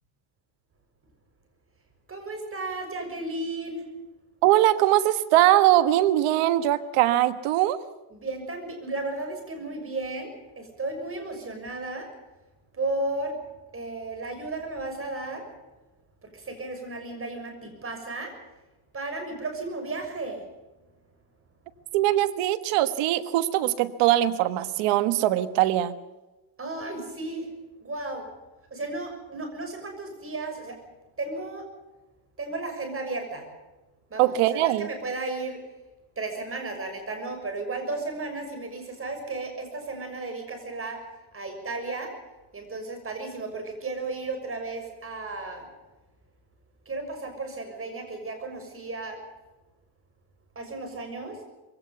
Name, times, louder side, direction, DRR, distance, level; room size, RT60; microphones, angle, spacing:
voice 1, 2.1-3.8 8.1-12.1 12.7-13.4 13.7-15.5 16.2-18.3 18.9-20.4 26.6-27.5 27.8-28.2 28.7-30.8 31.2-31.7 32.4-33.5 34.1-35.6 36.2-41.0 41.3-42.1 42.5-45.7 46.8-49.2 50.5-51.4, right 2 dB, 25° right, 5 dB, 6.5 m, -34 dB
voice 2, 4.4-7.8 21.9-25.9 34.2-34.9, right 14 dB, 85° right, 12 dB, 1.5 m, -21 dB
22.0 x 17.5 x 7.0 m, 1.1 s
cardioid pair, 120°, 49 cm